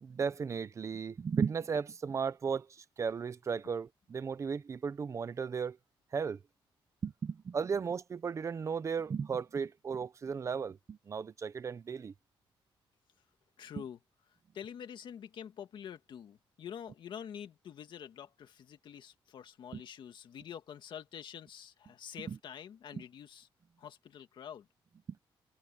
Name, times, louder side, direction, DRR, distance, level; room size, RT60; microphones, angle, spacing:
voice 1, 0.0-5.8 6.1-6.4 7.0-12.1 19.7-19.8 22.3-22.4 22.9-23.0, right 6 dB, 35° right, 0.8 m, -35 dB
voice 2, 13.6-14.0 14.5-23.5 23.8-24.7, left 8 dB, 60° left, 1.9 m, -47 dB
wide cardioid pair, 155°, 9 cm